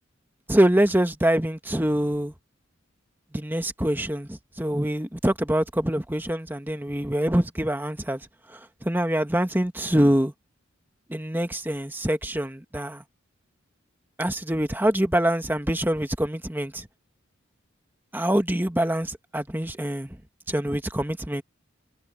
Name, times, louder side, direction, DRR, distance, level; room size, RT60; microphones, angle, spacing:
voice 1, 0.5-2.3 3.3-8.2 8.5-10.3 11.1-13.0 14.2-16.9 18.1-20.2 20.5-21.4, right 1 dB, 10° right, 1.4 m, -25 dB
head